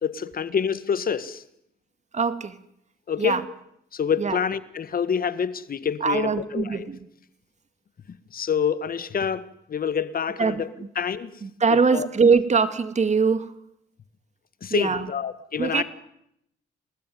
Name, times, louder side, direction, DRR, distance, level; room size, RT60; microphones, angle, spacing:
voice 1, 0.0-1.4 3.1-3.4 3.9-6.9 8.3-10.7 10.9-11.3 11.7-12.1 14.6-15.8, left 7 dB, 45° left, 1.7 m, -27 dB
voice 2, 2.1-2.6 3.2-3.4 4.2-4.4 6.0-7.1 10.4-10.9 11.4-13.5 14.7-15.1 15.6-15.8, right 5 dB, 35° right, 2.3 m, -22 dB
28.0 x 19.5 x 9.5 m
cardioid pair, 90°, 20 cm